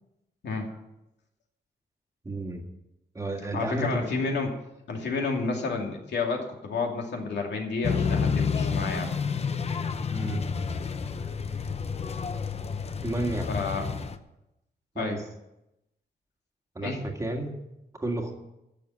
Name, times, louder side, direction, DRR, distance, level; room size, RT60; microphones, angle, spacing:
voice 1, 2.2-2.6 3.1-4.1 10.1-10.4 13.0-13.5 15.0-15.2 16.8-17.6 17.9-18.3, right 2 dB, 15° right, 2 dB, 1.8 m, -31 dB
voice 2, 3.5-4.6 4.9-9.1 13.5-13.9 15.0-15.2 16.8-17.0, left 4 dB, 75° left, 1 dB, 2.6 m, -30 dB
sound 1, 7.8-14.2, left 5 dB, 35° left, 0.7 m, -29 dB
11.5 x 7.0 x 9.6 m, 0.89 s
wide cardioid pair, 160°, 18 cm